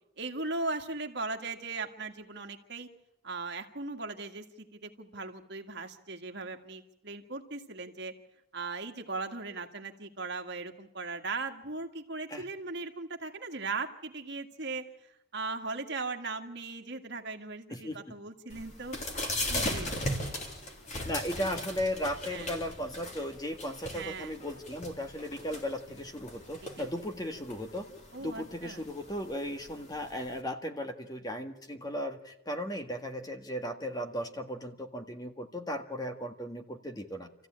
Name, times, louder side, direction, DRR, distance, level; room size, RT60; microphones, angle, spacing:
voice 1, 0.2-2.9 3.2-8.1 8.5-14.8 15.3-19.0 19.5-19.9 22.3-22.5 23.9-24.4 26.8-26.9 28.1-28.8, right 3 dB, 60° right, 5 dB, 1.9 m, -38 dB
voice 2, 17.7-18.1 21.0-27.9 28.2-37.5, equal, 20° left, 5 dB, 1.7 m, -36 dB
sound 1, 18.5-30.4, left 1 dB, 40° left, 3.5 m, -38 dB
27.5 x 15.0 x 8.8 m, 0.88 s
head